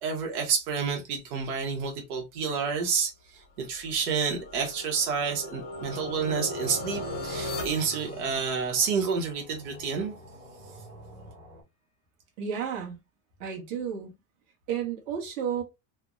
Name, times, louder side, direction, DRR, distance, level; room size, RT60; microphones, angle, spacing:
voice 1, 0.0-10.1, right 6 dB, 85° right, 1.0 m, -29 dB
sound 1, 3.8-9.0, left 1 dB, 25° left, 0.5 m, -38 dB
sound 2, 5.7-11.6, right 1 dB, 35° right, 1.5 m, -47 dB
voice 2, 12.4-13.0 13.4-14.1 14.7-15.6, right 8 dB, 55° right, 1.2 m, -32 dB
3.4 x 2.1 x 2.4 m
supercardioid pair, 155°, 43 cm